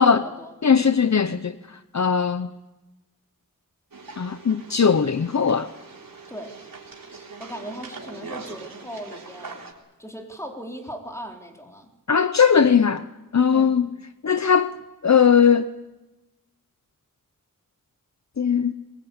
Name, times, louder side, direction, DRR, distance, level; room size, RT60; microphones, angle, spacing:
voice 1, 0.0-0.8 6.3-6.6 7.4-9.6 10.0-11.9 13.5-13.8, equal, 10° left, 4.1 m, -38 dB
voice 2, 0.6-1.5 1.9-2.5 4.2-5.7 12.1-13.1 13.3-13.9 14.2-14.7 15.0-15.7 18.4-18.7, left 6 dB, 55° left, 0.8 m, -19 dB
sound 1, 3.9-9.7, right 4 dB, 90° right, 3.7 m, -42 dB
22.5 x 21.0 x 8.5 m
wide cardioid pair, 85°, 33 cm